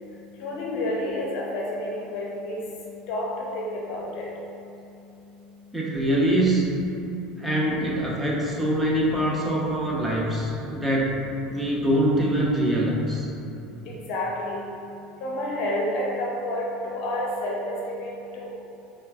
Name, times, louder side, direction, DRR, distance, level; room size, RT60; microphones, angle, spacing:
voice 1, 0.4-2.6 3.1-3.3 3.5-4.3 13.9-14.6 15.2-18.5, left 1 dB, 55° left, -3 dB, 0.6 m, -29 dB
voice 2, 5.7-6.7 7.3-13.3, right 1 dB, 10° right, -4 dB, 0.8 m, -24 dB
5.5 x 2.2 x 2.4 m, 2.8 s
hypercardioid pair, 75°, 0 cm